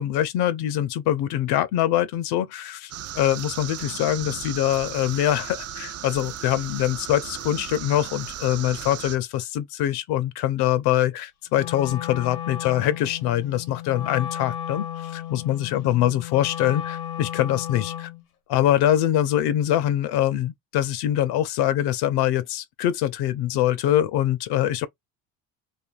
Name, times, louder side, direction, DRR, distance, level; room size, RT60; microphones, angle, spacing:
voice 1, 0.0-18.1 18.5-24.9, left 12 dB, 65° left, 0.6 m, -24 dB
sound 1, 2.9-9.2, right 10 dB, 40° right, 0.4 m, -36 dB
Wind instrument woodwind instrument, 11.5-18.2, left 10 dB, 90° left, 0.9 m, -34 dB
2.6 x 2.5 x 2.3 m
supercardioid pair, 70°, 41 cm